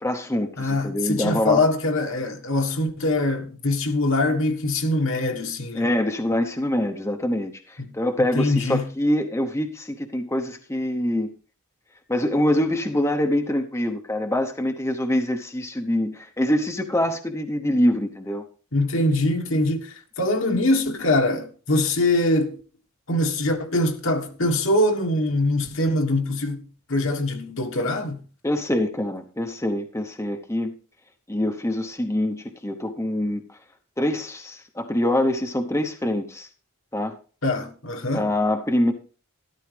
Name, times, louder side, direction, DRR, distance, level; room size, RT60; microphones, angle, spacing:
voice 1, 0.0-1.6 5.7-11.3 12.1-18.4 28.4-30.7 31.3-33.4 34.0-36.5 36.9-37.2 38.1-38.9, left 1 dB, 15° left, 0.9 m, -24 dB
voice 2, 0.6-6.0 7.8-7.9 8.3-8.9 18.7-22.6 23.1-28.2 37.4-38.3, left 2 dB, 60° left, 1.5 m, -23 dB
13.0 x 12.0 x 3.4 m
head